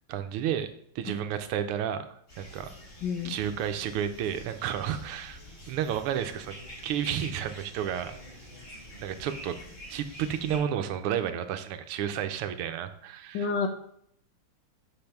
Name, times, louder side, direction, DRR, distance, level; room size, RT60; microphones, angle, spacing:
voice 1, 0.1-2.1 2.4-2.7 3.2-5.4 5.7-6.6 6.8-8.1 9.0-9.6 9.9-13.5, right 9 dB, 90° right, 9 dB, 1.6 m, -31 dB
sound 1, 2.3-10.6, equal, 40° left, 3.8 m, -47 dB
voice 2, 3.0-3.3 13.3-13.7, left 5 dB, 65° left, 6 dB, 1.4 m, -29 dB
6.2 x 5.3 x 5.9 m, 0.68 s
omnidirectional pair, 2.4 m